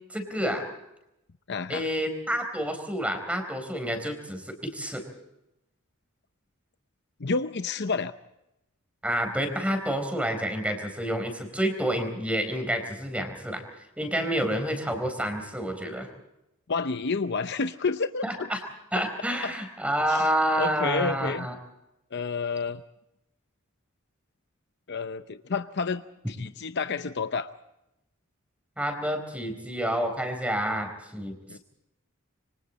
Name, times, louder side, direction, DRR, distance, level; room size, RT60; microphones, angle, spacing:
voice 1, 0.1-0.6 1.7-5.0 9.0-13.6 14.0-16.1 18.2-18.6 18.9-21.5 28.8-31.6, equal, 5° right, 6 dB, 4.2 m, -29 dB
voice 2, 1.5-1.9 7.2-8.1 16.7-18.5 19.4-19.5 20.1-20.3 20.6-21.5 22.1-22.8 24.9-26.0 26.3-27.5 31.5-31.6, left 4 dB, 55° left, 10 dB, 0.7 m, -29 dB
27.0 x 24.5 x 4.2 m, 0.88 s
head